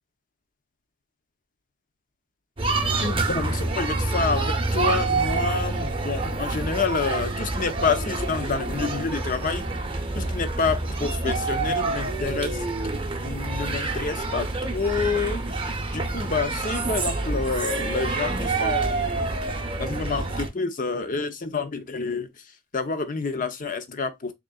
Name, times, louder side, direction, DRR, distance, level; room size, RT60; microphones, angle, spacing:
sound 1, 2.6-20.5, right 3 dB, 25° right, 0.7 m, -27 dB
voice 1, 3.0-9.6 10.2-12.6 13.2-14.5 14.7-15.4 15.9-19.0 19.8-22.3 22.7-24.3, left 4 dB, 35° left, 0.6 m, -28 dB
3.7 x 3.5 x 2.3 m
head